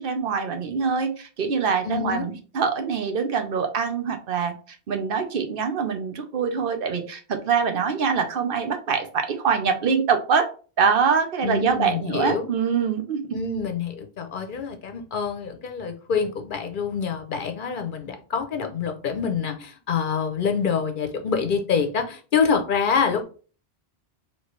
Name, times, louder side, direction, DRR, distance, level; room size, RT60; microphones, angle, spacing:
voice 1, 0.0-4.5 4.9-10.5 10.8-13.2, right 6 dB, 60° right, 0.9 m, -24 dB
voice 2, 1.8-2.2 11.4-12.5 13.3-23.2, left 6 dB, 55° left, 0.8 m, -26 dB
4.5 x 3.0 x 3.1 m
omnidirectional pair, 1.1 m